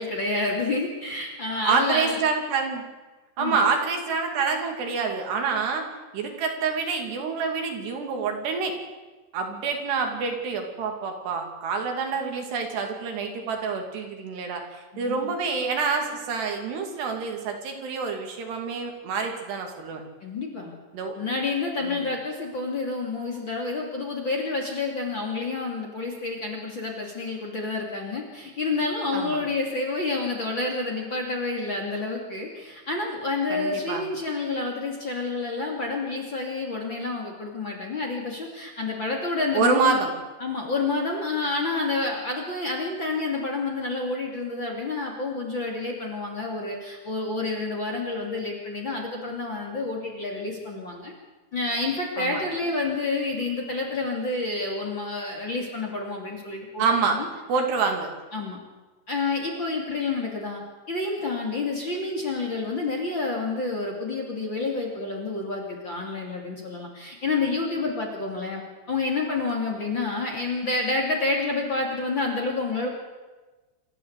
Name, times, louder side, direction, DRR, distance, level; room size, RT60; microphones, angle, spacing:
voice 1, 0.0-2.2 3.4-3.6 14.9-15.3 20.2-20.7 21.2-40.0 40.4-51.1 51.5-57.3 58.3-58.6 59.1-60.6 60.9-68.6 68.9-72.9, left 3 dB, 30° left, 0 dB, 2.8 m, -29 dB
voice 2, 1.6-2.9 3.4-5.9 6.1-8.7 9.3-20.0 20.9-21.2 21.8-22.0 29.1-29.4 33.5-34.0 39.5-40.1 52.2-52.4 56.8-57.2 57.5-58.1, right 5 dB, 70° right, 3 dB, 4.5 m, -27 dB
26.5 x 13.5 x 8.2 m, 1.2 s
omnidirectional pair, 5.2 m